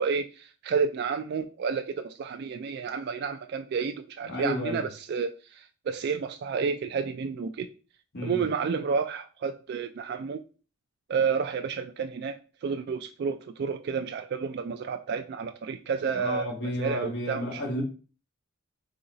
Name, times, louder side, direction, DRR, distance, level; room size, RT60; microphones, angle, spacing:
voice 1, 0.0-7.7 8.2-10.4 11.1-17.6, right 5 dB, 50° right, 7 dB, 0.3 m, -30 dB
voice 2, 4.2-4.8 8.1-8.4 16.1-17.8, left 1 dB, 55° left, -1 dB, 1.5 m, -32 dB
4.0 x 2.9 x 3.8 m, 0.36 s
head